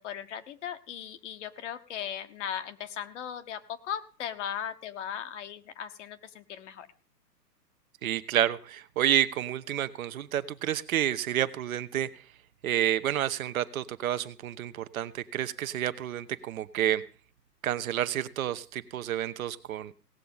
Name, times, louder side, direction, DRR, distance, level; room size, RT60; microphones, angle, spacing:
voice 1, 0.0-6.9, left 9 dB, 45° left, 10 dB, 1.1 m, -38 dB
voice 2, 8.0-12.1 12.6-17.0 17.6-19.9, right 11 dB, 55° right, 11 dB, 0.9 m, -29 dB
17.5 x 6.9 x 5.4 m, 0.40 s
hypercardioid pair, 130°, 48 cm